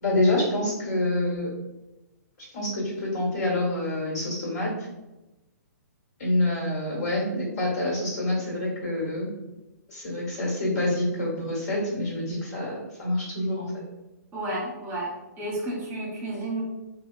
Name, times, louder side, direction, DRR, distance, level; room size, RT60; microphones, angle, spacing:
voice 1, 0.0-1.5 2.5-4.7 6.2-9.3 9.9-13.7, left 1 dB, 65° left, -4 dB, 1.5 m, -27 dB
voice 2, 14.3-16.6, right 1 dB, 20° right, -4 dB, 0.8 m, -32 dB
2.9 x 2.3 x 2.3 m, 1.0 s
hypercardioid pair, 135°, 10 cm